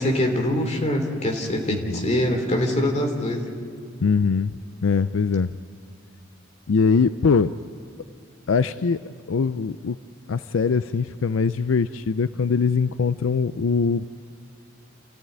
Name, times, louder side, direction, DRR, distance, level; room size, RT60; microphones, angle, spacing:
voice 1, 0.0-3.5, left 1 dB, 35° left, 2 dB, 3.2 m, -23 dB
voice 2, 1.7-2.0 4.0-5.6 6.7-7.5 8.5-9.0 9.3-10.0 10.3-14.1, left 5 dB, 80° left, 13 dB, 0.5 m, -22 dB
30.0 x 14.0 x 9.3 m, 2.4 s
head